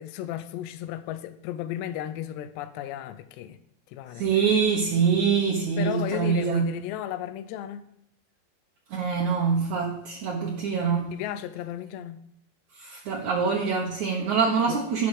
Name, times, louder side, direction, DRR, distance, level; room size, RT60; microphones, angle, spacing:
voice 1, 0.0-3.6 3.9-4.2 5.8-7.9 11.1-12.2 14.7-14.8, left 11 dB, 80° left, 2.8 m, -34 dB
voice 2, 4.2-6.7 8.9-11.2 12.8-15.1, right 6 dB, 70° right, 1.8 m, -25 dB
11.0 x 5.9 x 7.9 m
omnidirectional pair, 5.2 m